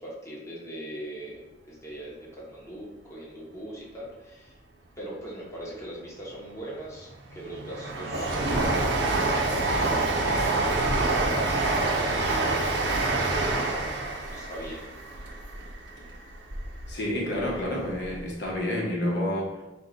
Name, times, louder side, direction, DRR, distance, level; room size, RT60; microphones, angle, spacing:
voice 1, 0.0-4.6 5.0-9.0 9.3-11.2 11.5-13.9 14.3-14.8, equal, 15° left, -6 dB, 1.0 m, -40 dB
Train, 6.7-16.9 17.3-18.2 18.5-18.6, right 2 dB, 80° right, 0.7 m, -27 dB
voice 2, 16.9-19.5, left 1 dB, 70° left, -3 dB, 1.1 m, -29 dB
4.6 x 2.4 x 3.9 m, 1.1 s
head